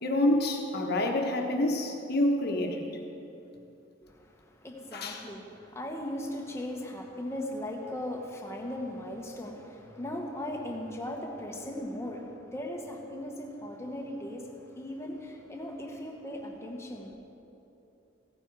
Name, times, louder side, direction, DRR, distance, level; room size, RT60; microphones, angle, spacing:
voice 1, 0.0-2.8 4.9-5.3, left 1 dB, 55° left, 3 dB, 1.3 m, -27 dB
voice 2, 4.0-17.1, left 1 dB, 15° left, 0 dB, 1.3 m, -38 dB
16.0 x 9.8 x 4.8 m, 2.9 s
head